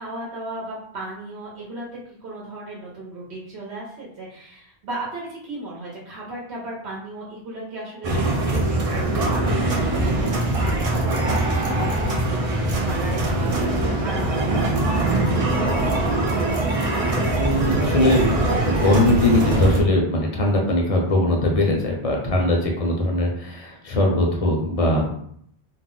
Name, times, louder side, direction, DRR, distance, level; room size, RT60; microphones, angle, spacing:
voice 1, 0.0-12.4 12.8-16.1 22.5-22.7, right 2 dB, 80° right, -5 dB, 1.0 m, -36 dB
sound 1, 8.0-19.8, right 2 dB, 45° right, 0.5 m, -22 dB
voice 2, 17.4-25.1, left 1 dB, 40° left, -1 dB, 0.6 m, -21 dB
2.4 x 2.1 x 3.7 m, 0.67 s
omnidirectional pair, 1.1 m